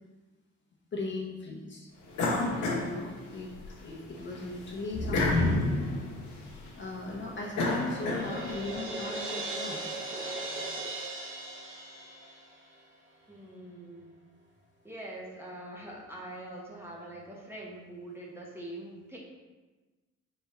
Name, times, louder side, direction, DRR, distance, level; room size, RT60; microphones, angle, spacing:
voice 1, 0.9-1.9 2.5-3.5 3.8-5.7 6.8-9.8, left 3 dB, 40° left, -3 dB, 0.9 m, -38 dB
sound 1, 2.1-3.7 4.1-8.7, left 2 dB, 80° left, 1.0 m, -30 dB
Crash cymbal, 7.9-12.8, right 2 dB, 40° right, 0.9 m, -38 dB
voice 2, 13.3-14.1 14.8-19.2, right 1 dB, 10° right, -4 dB, 1.0 m, -43 dB
4.3 x 3.5 x 3.1 m, 1.2 s
cardioid pair, 90°, 30 cm